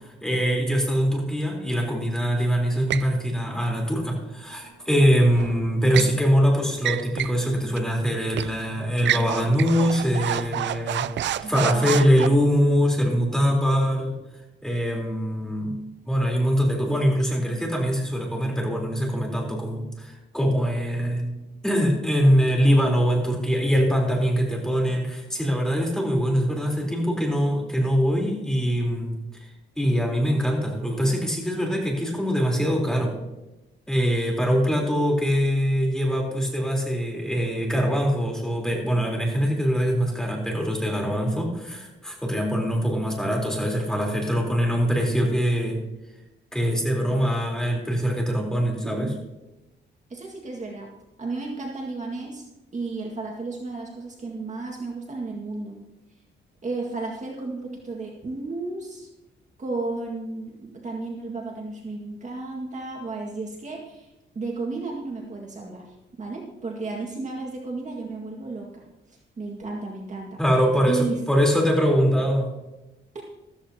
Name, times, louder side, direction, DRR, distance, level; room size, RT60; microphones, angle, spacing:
voice 1, 0.2-11.1 11.4-14.2 14.6-15.8 16.1-21.4 21.6-29.2 29.8-33.1 33.9-45.8 46.5-49.1 70.4-72.5, equal, 5° left, -1 dB, 3.8 m, -23 dB
sound 1, 2.9-3.1 5.3-6.2 6.8-7.4 7.8-7.9 8.4-8.6 9.0-12.3, right 11 dB, 70° right, 0.4 m, -29 dB
voice 2, 11.4-12.0 49.0-49.1 50.1-50.9 51.2-52.4 52.7-55.8 56.6-59.1 59.6-70.4 70.9-71.2 73.1-73.2, right 3 dB, 40° right, -1 dB, 1.9 m, -33 dB
14.5 x 13.5 x 2.9 m, 0.98 s
cardioid pair, 115°, 19 cm